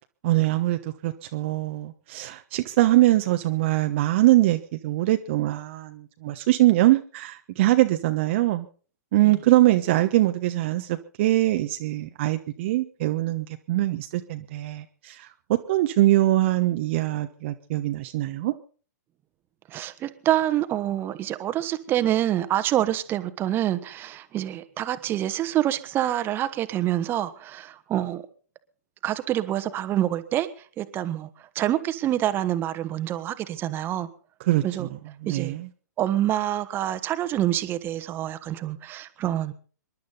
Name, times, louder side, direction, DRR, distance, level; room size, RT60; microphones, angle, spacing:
voice 1, 0.2-8.7 9.1-18.5 34.4-34.9 35.2-35.7, right 16 dB, 40° right, 6 dB, 1.0 m, -23 dB
voice 2, 19.7-28.2 29.0-30.5 30.8-31.3 31.5-34.1 34.6-34.9 35.3-35.5 36.0-39.5, right 12 dB, 25° right, 11 dB, 1.3 m, -26 dB
26.5 x 11.5 x 4.0 m, 0.41 s
figure-of-eight pair, 120°, 9 cm